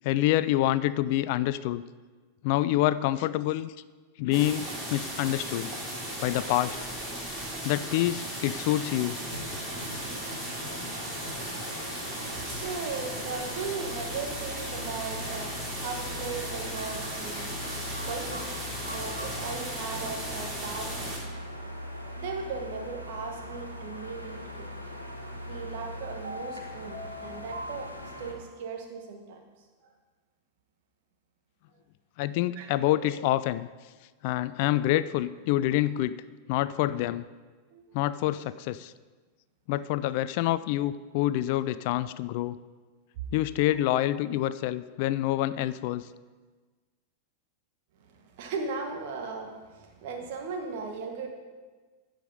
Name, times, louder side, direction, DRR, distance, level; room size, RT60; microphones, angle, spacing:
voice 1, 0.0-1.8 2.4-3.7 4.2-5.7 6.2-6.8 7.6-9.2 32.2-33.7 34.2-36.2 36.5-37.3 37.9-38.9 39.7-42.6 43.3-46.1, left 14 dB, 45° left, 16 dB, 0.3 m, -27 dB
sound 1, 4.3-21.2, right 1 dB, 15° right, 3.6 m, -36 dB
sound 2, 9.3-28.3, left 1 dB, 90° left, 1.3 m, -41 dB
voice 2, 12.1-21.2 22.1-24.7 25.4-27.9 28.2-29.4 32.6-32.7 37.7-37.8 43.1-43.2 48.0-51.3, right 4 dB, 50° right, 3 dB, 1.7 m, -37 dB
sound 3, 25.9-28.7 32.8-33.3, left 1 dB, 70° right, 2.2 m, -43 dB
15.0 x 5.1 x 5.4 m, 1.4 s
figure-of-eight pair, 90°, 0 cm